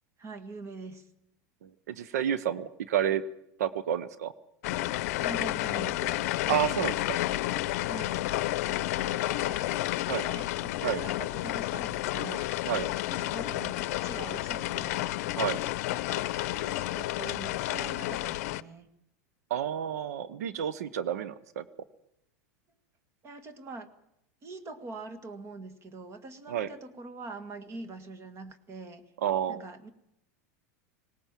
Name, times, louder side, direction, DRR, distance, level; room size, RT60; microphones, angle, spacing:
voice 1, 0.2-1.1 5.2-6.3 7.8-8.1 8.6-9.8 10.1-12.5 13.1-15.1 15.9-18.9 23.2-23.9 24.4-29.0 29.5-29.9, right 3 dB, 30° right, 10 dB, 1.9 m, -43 dB
voice 2, 1.6-3.2 3.6-4.3 6.5-7.2 10.1-10.2 10.8-11.0 12.6-12.9 15.3-15.6 19.5-21.6 26.5-26.7 29.2-29.6, right 10 dB, 80° right, 15 dB, 0.9 m, -30 dB
sound 1, 4.6-18.6, left 17 dB, 70° left, 0.7 m, -31 dB
20.0 x 18.0 x 7.4 m, 0.79 s
hypercardioid pair, 115°, 8 cm